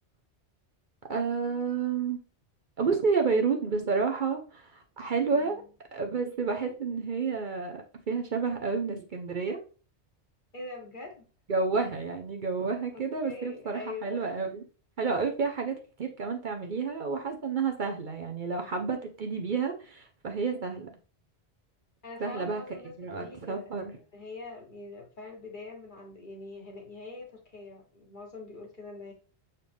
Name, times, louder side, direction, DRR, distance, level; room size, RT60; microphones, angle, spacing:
voice 1, 1.1-2.2 2.8-5.6 5.9-9.6 11.5-14.6 15.0-20.9 22.2-22.6 23.0-23.9, right 5 dB, 50° right, 3 dB, 0.8 m, -30 dB
voice 2, 10.5-11.2 12.9-14.3 22.0-29.1, left 3 dB, 45° left, 1 dB, 1.5 m, -44 dB
6.6 x 4.2 x 3.4 m, 0.37 s
omnidirectional pair, 1.1 m